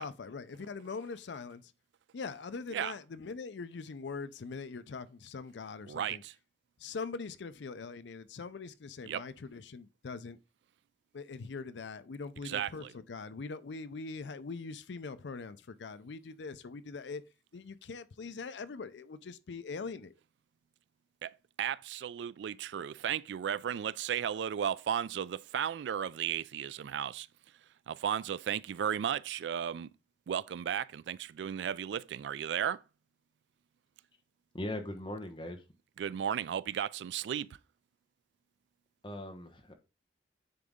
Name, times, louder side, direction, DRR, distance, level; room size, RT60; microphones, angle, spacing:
voice 1, 0.0-1.7 2.1-6.2 6.8-10.4 11.1-17.2 17.5-20.1, left 4 dB, 85° left, 0.5 m, -42 dB
voice 2, 5.9-6.3 9.1-9.2 12.4-12.9 21.2-27.3 27.9-29.9 30.3-32.8 36.0-37.6, right 9 dB, 85° right, 0.3 m, -35 dB
voice 3, 34.5-35.6 39.0-39.7, left 1 dB, 25° left, 1.1 m, -39 dB
9.6 x 3.9 x 3.6 m
head